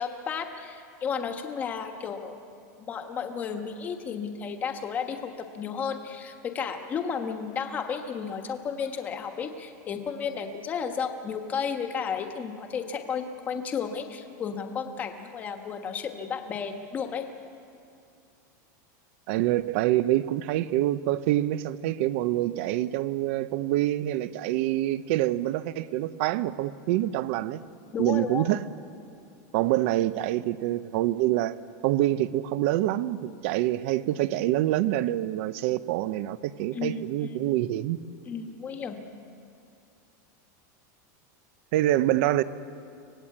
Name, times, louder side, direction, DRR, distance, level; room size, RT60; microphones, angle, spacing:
voice 1, 0.0-2.4 2.8-17.3 27.9-28.4 36.7-37.4 38.3-39.0, left 6 dB, 15° left, 1.4 m, -33 dB
voice 2, 19.3-27.6 28.0-28.7 29.5-31.6 31.8-38.0 41.7-42.4, right 14 dB, 45° right, 0.7 m, -26 dB
25.0 x 19.0 x 8.6 m
supercardioid pair, 180°, 10 cm